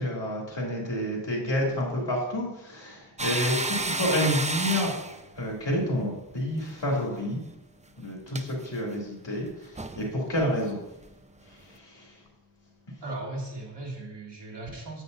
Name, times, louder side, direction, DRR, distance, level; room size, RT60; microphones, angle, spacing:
voice 1, 0.0-4.9 5.3-7.4 8.0-10.8 11.4-12.2, left 1 dB, 80° left, -3 dB, 2.9 m, -29 dB
sound 1, 3.2-6.7 7.0-7.2 8.3-8.5 9.5-9.6 9.8-10.1 10.4-10.5 11.0-11.1, right 2 dB, 15° right, 0.5 m, -31 dB
voice 2, 13.0-15.0, right 2 dB, 75° right, -3 dB, 2.5 m, -37 dB
9.4 x 8.8 x 2.7 m, 0.91 s
wide cardioid pair, 50°, 43 cm